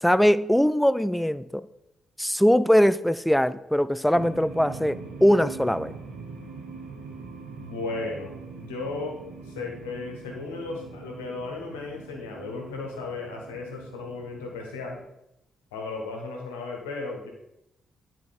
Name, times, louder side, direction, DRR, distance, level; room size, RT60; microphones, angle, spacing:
voice 1, 0.0-1.5 2.2-5.9, equal, 5° left, 16 dB, 0.4 m, -21 dB
sound 1, 4.1-15.0, right 4 dB, 70° right, 1.4 m, -43 dB
voice 2, 7.6-9.2 9.4-15.0 15.7-17.3, left 3 dB, 80° left, 1 dB, 1.3 m, -35 dB
10.0 x 4.3 x 4.2 m, 0.86 s
hypercardioid pair, 40°, 0 cm